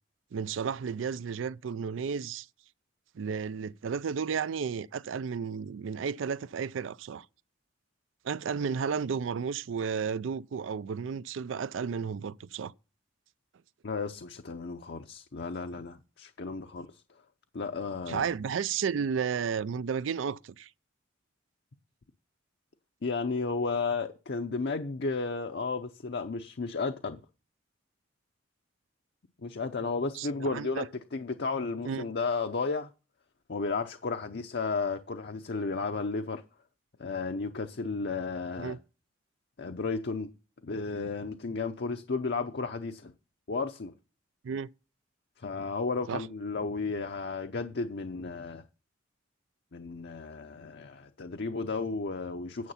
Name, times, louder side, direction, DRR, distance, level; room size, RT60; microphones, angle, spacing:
voice 1, 0.3-2.5 3.2-7.3 8.2-12.7 18.1-20.7 30.2-30.9 31.8-32.1 38.6-38.8 44.4-44.7 46.1-46.2, right 6 dB, 75° right, 0.4 m, -33 dB
voice 2, 13.8-17.0 17.5-18.3 23.0-27.2 29.4-30.8 31.1-32.9 33.5-36.4 37.0-38.8 39.6-40.3 40.6-43.1 43.5-43.9 45.4-48.6 49.7-52.7, left 4 dB, 60° left, 0.7 m, -33 dB
9.5 x 6.9 x 5.6 m
head